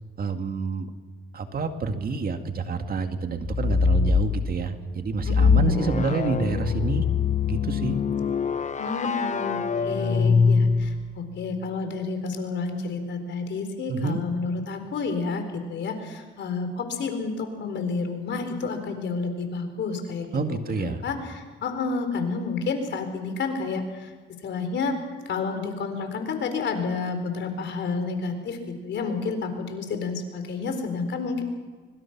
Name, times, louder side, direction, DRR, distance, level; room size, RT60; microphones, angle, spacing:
voice 1, 0.2-0.9 1.3-7.0 7.5-8.0 13.9-14.2 20.3-21.0, right 4 dB, 50° right, 6 dB, 2.1 m, -28 dB
sound 1, 3.4-4.3 5.2-11.2, left 5 dB, 35° left, 1.2 m, -23 dB
voice 2, 5.2-6.1 8.8-24.1 24.4-25.0 25.3-31.4, left 4 dB, 65° left, 7 dB, 4.3 m, -30 dB
24.5 x 23.0 x 6.1 m, 1.4 s
cardioid pair, 90°, 20 cm